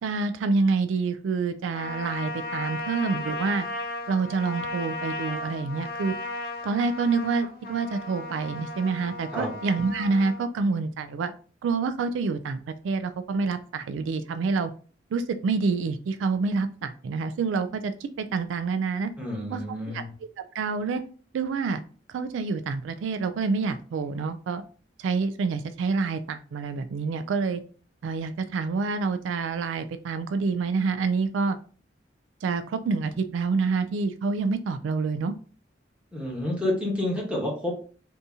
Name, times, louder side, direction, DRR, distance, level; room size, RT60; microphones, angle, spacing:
voice 1, 0.0-3.7 4.1-6.1 6.6-11.3 11.6-14.7 15.1-19.1 19.5-19.6 19.9-20.0 20.5-21.0 21.3-21.8 22.1-24.6 25.0-27.6 28.0-31.6 32.4-35.3, right 4 dB, 80° right, 10 dB, 0.3 m, -27 dB
Trumpet, 1.7-10.4, left 2 dB, 55° left, 1.0 m, -35 dB
voice 2, 19.2-20.1 36.1-37.7, left 1 dB, 5° right, -3 dB, 1.1 m, -29 dB
2.7 x 2.7 x 3.5 m, 0.40 s
head